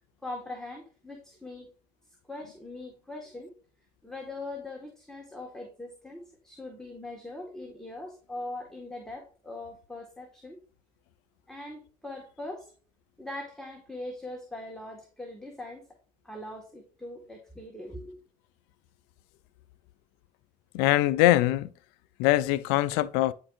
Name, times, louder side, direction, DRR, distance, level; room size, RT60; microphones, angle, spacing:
voice 1, 0.2-1.7 2.3-3.5 4.0-10.6 11.5-12.7 13.2-15.9 16.2-18.2, left 2 dB, 5° left, 1.7 m, -41 dB
voice 2, 20.7-21.7 22.2-23.3, left 15 dB, 80° left, 0.4 m, -23 dB
9.9 x 4.5 x 2.6 m
hypercardioid pair, 65°, 16 cm